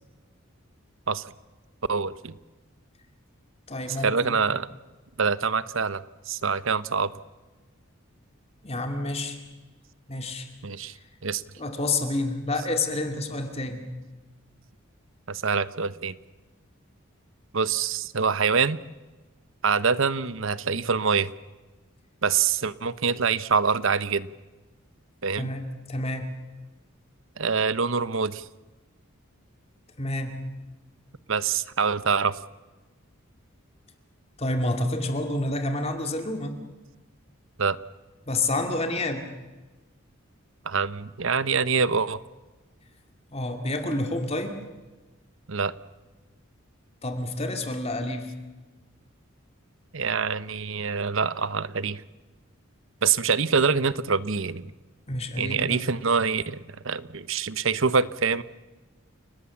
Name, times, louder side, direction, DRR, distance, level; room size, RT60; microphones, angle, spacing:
voice 1, 1.9-2.4 4.0-4.7 5.2-7.1 10.6-11.0 11.2-11.4 15.3-16.2 17.5-18.8 19.6-21.3 22.2-24.3 25.2-25.5 27.4-28.4 31.3-32.4 37.6-37.8 40.6-42.2 45.5-45.7 49.9-52.0 53.0-54.7 55.4-56.6 56.8-58.4, right 5 dB, 70° right, 16 dB, 0.9 m, -25 dB
voice 2, 3.7-4.3 8.6-9.4 10.1-10.5 10.9-11.0 11.6-13.9 25.3-26.4 30.0-30.4 34.4-36.6 38.3-39.3 43.3-44.6 47.0-48.3 55.1-55.8, left 2 dB, 30° left, 5 dB, 2.4 m, -29 dB
29.5 x 18.5 x 7.2 m, 1.2 s
head